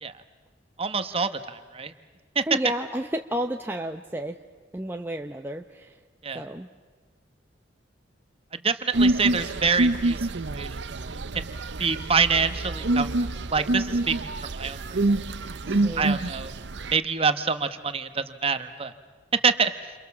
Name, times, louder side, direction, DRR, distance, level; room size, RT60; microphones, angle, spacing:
voice 1, 0.8-1.9 2.3-2.4 6.2-6.4 8.5-10.8 11.0-11.5 11.8-13.1 13.5-14.8 16.0-16.5 16.9-18.9 19.4-19.7, right 5 dB, 30° right, 10 dB, 1.3 m, -26 dB
voice 2, 2.5-4.4 4.7-6.0 6.3-6.7 15.7-16.1, equal, 10° right, 3 dB, 0.8 m, -31 dB
sound 1, 8.9-17.0, right 2 dB, 70° right, 0.8 m, -26 dB
29.5 x 28.0 x 7.2 m, 1.4 s
head